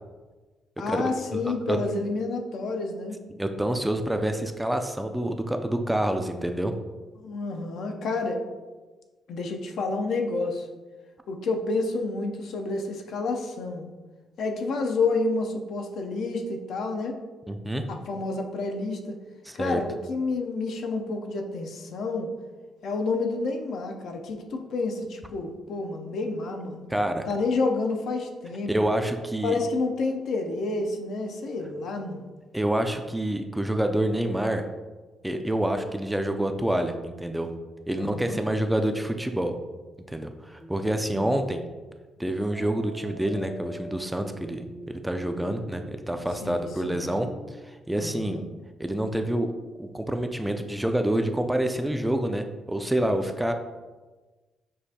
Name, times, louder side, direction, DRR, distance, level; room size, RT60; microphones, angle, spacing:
voice 1, 0.8-3.2 7.2-8.4 9.3-10.7 11.3-13.9 14.4-17.2 17.9-19.2 19.5-22.3 22.8-26.9 27.3-28.7 29.4-32.2 38.0-38.4 41.1-41.3 46.4-47.1 47.9-48.4, left 3 dB, 70° left, 4 dB, 0.5 m, -29 dB
voice 2, 1.3-1.8 3.4-6.7 17.5-17.8 19.5-19.8 26.9-27.3 28.7-29.6 32.5-34.7 35.2-37.5 37.9-39.6 40.1-41.6 42.2-47.3 47.6-48.5 48.8-49.5 49.8-53.5, right 1 dB, 5° right, 6 dB, 0.3 m, -27 dB
sound 1, 42.5-47.6, equal, 50° left, 0.8 m, -45 dB
6.2 x 2.5 x 2.7 m, 1.3 s
cardioid pair, 90°, 0 cm